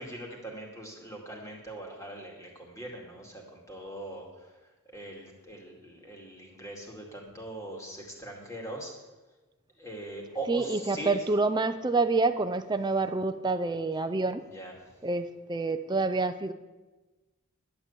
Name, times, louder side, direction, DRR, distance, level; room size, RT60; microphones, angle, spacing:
voice 1, 0.0-4.5 4.9-8.9 9.8-11.2 14.4-14.7, right 1 dB, 15° left, -1 dB, 2.4 m, -41 dB
voice 2, 10.5-14.4 15.0-16.5, right 3 dB, 20° right, 8 dB, 0.5 m, -27 dB
11.5 x 7.7 x 8.3 m, 1.2 s
head